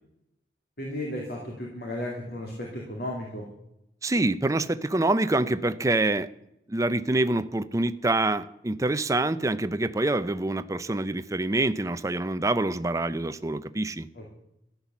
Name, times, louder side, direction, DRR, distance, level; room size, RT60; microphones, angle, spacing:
voice 1, 0.8-3.5 14.1-14.3, left 1 dB, 60° left, -1 dB, 2.9 m, -34 dB
voice 2, 4.0-6.3 6.7-14.1, right 2 dB, 20° right, 11 dB, 0.5 m, -26 dB
14.5 x 10.5 x 7.1 m, 0.82 s
head